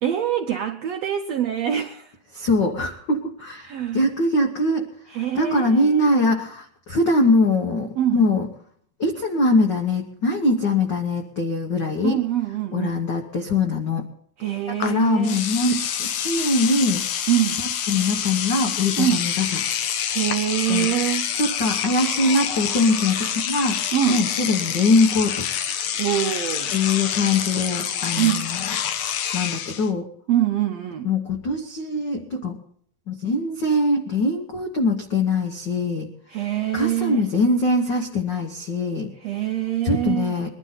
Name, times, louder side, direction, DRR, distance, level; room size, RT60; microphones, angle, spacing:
voice 1, 0.0-2.1 3.6-4.0 5.1-6.1 8.0-8.2 12.0-13.0 14.4-15.4 17.3-17.6 19.0-19.2 20.1-21.3 23.9-24.3 26.0-26.7 28.2-28.5 30.3-31.1 36.3-37.2 39.2-40.4, right 11 dB, 80° right, 5 dB, 1.5 m, -24 dB
voice 2, 2.3-4.9 5.1-8.5 9.0-12.2 12.7-14.0 14.7-17.0 17.9-19.6 20.7-20.9 21.3-25.4 26.7-28.6 29.3-30.1 31.0-32.6 33.1-36.1 36.7-39.1 39.8-40.5, left 2 dB, 90° left, 3 dB, 0.9 m, -22 dB
Engine / Domestic sounds home sounds, 14.8-14.9 15.2-29.9, left 9 dB, 65° left, 2.2 m, -27 dB
21.5 x 12.0 x 4.0 m, 0.64 s
omnidirectional pair, 4.0 m